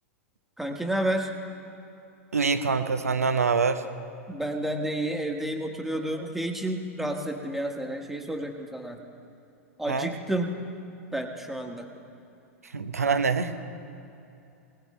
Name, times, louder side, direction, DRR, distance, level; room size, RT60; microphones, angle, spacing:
voice 1, 0.6-1.3 4.3-9.0 9.8-10.5 11.1-11.9, right 1 dB, 5° right, 2 dB, 1.5 m, -30 dB
voice 2, 2.3-3.9 9.9-10.1 12.6-13.6, right 5 dB, 90° right, 10 dB, 0.8 m, -25 dB
19.5 x 19.0 x 3.3 m, 2.7 s
hypercardioid pair, 100°, 8 cm